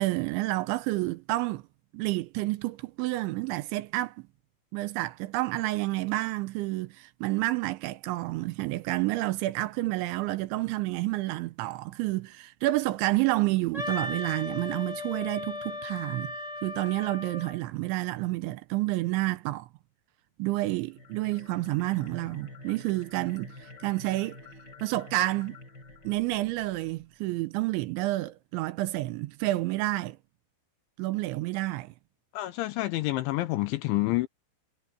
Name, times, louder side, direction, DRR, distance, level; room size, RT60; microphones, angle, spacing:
voice 1, 0.0-1.6 1.9-4.3 4.7-19.7 20.4-24.4 24.8-25.6 26.0-30.2 31.0-31.9, right 18 dB, 80° right, 2.9 m, -29 dB
Wind instrument woodwind instrument, 13.7-17.6, left 2 dB, 20° right, 1.0 m, -36 dB
sound 1, 20.9-27.1, left 2 dB, 20° left, 6.1 m, -48 dB
voice 2, 32.3-34.3, left 18 dB, 75° left, 3.0 m, -28 dB
omnidirectional pair, 5.8 m